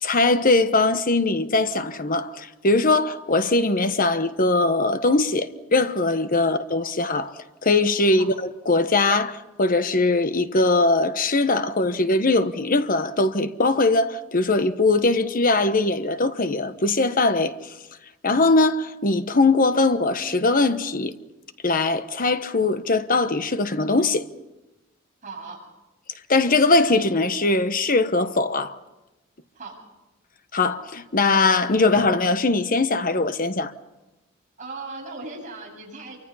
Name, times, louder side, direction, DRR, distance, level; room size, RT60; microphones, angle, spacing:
voice 1, 0.0-7.3 7.6-17.5 18.2-21.1 21.6-24.2 26.3-28.8 30.5-33.7, left 3 dB, 40° left, 1.2 m, -21 dB
voice 2, 25.2-25.6 29.5-29.8 34.6-36.2, right 3 dB, 35° right, 7.9 m, -37 dB
27.5 x 24.5 x 5.6 m
head